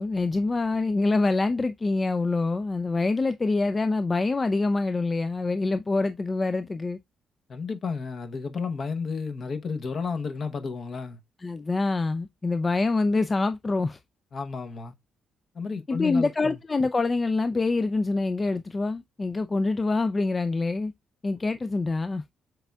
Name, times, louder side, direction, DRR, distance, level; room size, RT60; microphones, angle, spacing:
voice 1, 0.0-7.0 11.4-14.0 15.9-20.9 21.2-22.2, left 3 dB, 25° left, 0.3 m, -25 dB
voice 2, 7.5-11.2 14.3-14.9 15.5-16.6, left 5 dB, 50° left, 0.9 m, -32 dB
6.7 x 3.4 x 2.2 m
cardioid pair, 90°, 0 cm